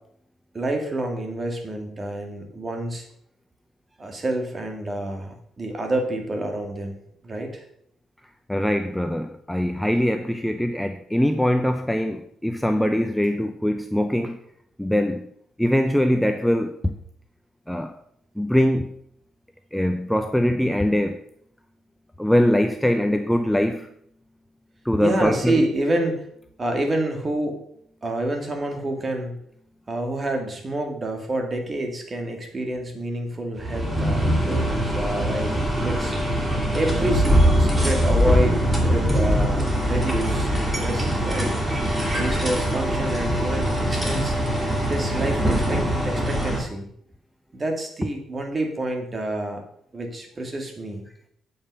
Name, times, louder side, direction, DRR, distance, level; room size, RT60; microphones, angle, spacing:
voice 1, 0.5-3.1 4.0-7.0 7.2-7.6 25.0-26.2 26.6-27.6 28.0-29.4 29.9-36.1 36.4-40.5 40.8-41.5 42.1-44.4 44.9-46.9 47.5-49.6 49.9-51.0, right 1 dB, 30° right, 3 dB, 2.0 m, -28 dB
voice 2, 8.5-14.4 14.8-15.3 15.6-16.9 17.7-17.9 18.4-19.0 19.7-21.2 22.2-23.9 24.8-25.6, equal, 5° left, 6 dB, 0.6 m, -22 dB
sound 1, 33.6-46.6, equal, 15° right, 2.6 m, -22 dB
8.6 x 5.5 x 5.5 m, 0.69 s
cardioid pair, 90°, 0 cm